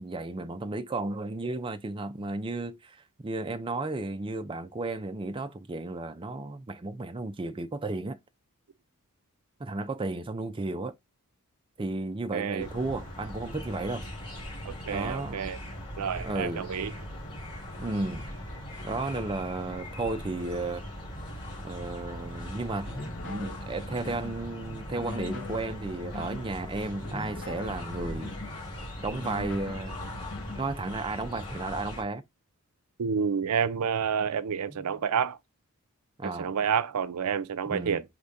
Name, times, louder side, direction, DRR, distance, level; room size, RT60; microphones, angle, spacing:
voice 1, 0.0-8.2 9.6-10.9 11.8-14.0 14.9-15.4 16.2-16.7 17.8-18.2 18.8-20.8 21.6-22.9 23.2-28.3 29.0-30.0 30.6-32.2 34.7-35.0 36.2-36.5 37.7-38.0, right 2 dB, 20° right, 0.4 m, -33 dB
voice 2, 12.3-12.7 14.6-15.6 16.0-16.9 33.0-35.4 36.2-38.0, right 7 dB, 85° right, 0.5 m, -29 dB
sound 1, 12.6-32.0, equal, 20° left, 2.8 m, -40 dB
sound 2, 22.8-24.4 24.9-26.5 27.0-28.6 29.1-30.7, left 3 dB, 60° left, 1.3 m, -41 dB
4.9 x 3.3 x 2.6 m
head